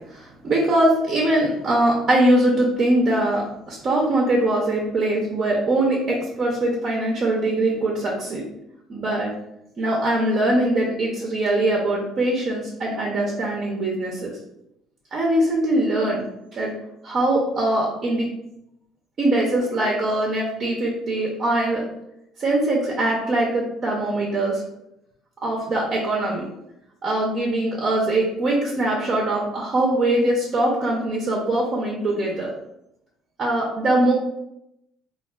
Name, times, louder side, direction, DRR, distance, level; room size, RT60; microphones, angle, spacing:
voice 1, 0.1-8.4 8.9-9.3 9.8-14.3 15.1-16.2 16.5-16.7 17.0-18.3 19.2-21.8 22.4-24.6 25.4-26.4 27.0-32.5 33.4-34.1, right 1 dB, 35° right, -2 dB, 0.5 m, -22 dB
3.3 x 2.3 x 2.2 m, 0.84 s
cardioid pair, 130°, 0 cm